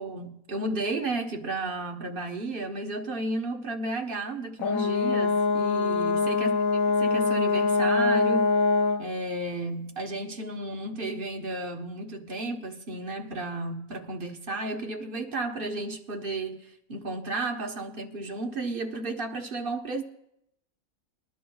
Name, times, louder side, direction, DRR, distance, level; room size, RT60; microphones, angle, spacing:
voice 1, 0.0-6.5 6.9-8.5 9.0-20.0, right 2 dB, 45° right, 1.3 m, -33 dB
Brass instrument, 4.6-9.1, left 4 dB, 85° left, 1.1 m, -24 dB
21.5 x 12.0 x 2.3 m
omnidirectional pair, 1.4 m